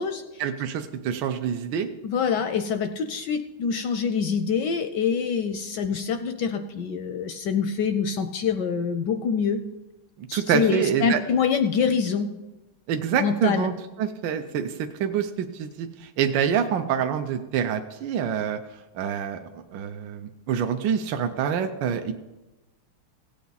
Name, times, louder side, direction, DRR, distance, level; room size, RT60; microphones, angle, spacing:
voice 1, 0.4-1.9 2.4-2.5 10.2-11.2 12.9-13.7 14.0-22.1, right 8 dB, 70° right, 6 dB, 1.2 m, -26 dB
voice 2, 2.0-9.6 10.3-12.3 13.2-13.7, left 6 dB, 75° left, 9 dB, 1.0 m, -25 dB
16.5 x 8.4 x 4.0 m, 1.1 s
omnidirectional pair, 2.3 m